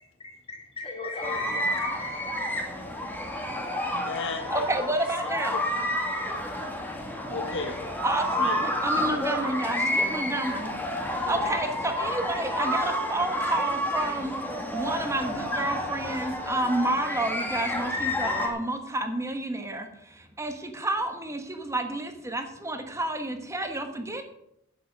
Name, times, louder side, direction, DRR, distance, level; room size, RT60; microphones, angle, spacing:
voice 1, 0.2-2.5, left 3 dB, 25° left, 3.2 m, -37 dB
sound 1, 1.2-18.5, left 1 dB, 10° left, 1.8 m, -30 dB
voice 2, 3.9-4.9 5.2-5.9 7.3-7.8 8.4-8.7, left 4 dB, 60° left, 1.5 m, -35 dB
voice 3, 4.5-5.6 8.0-14.3 14.7-24.2, right 1 dB, 15° right, 1.2 m, -30 dB
10.5 x 7.8 x 7.5 m
head